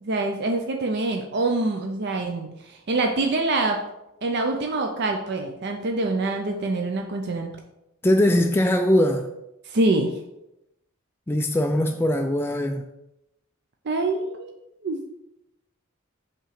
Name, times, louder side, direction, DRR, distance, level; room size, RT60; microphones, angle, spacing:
voice 1, 0.0-3.8 4.2-7.5 9.7-10.1 13.9-15.0, right 2 dB, 55° right, 0.6 m, -25 dB
voice 2, 8.0-9.3 11.3-12.8, left 1 dB, 10° left, 0.3 m, -21 dB
5.6 x 3.7 x 5.8 m
head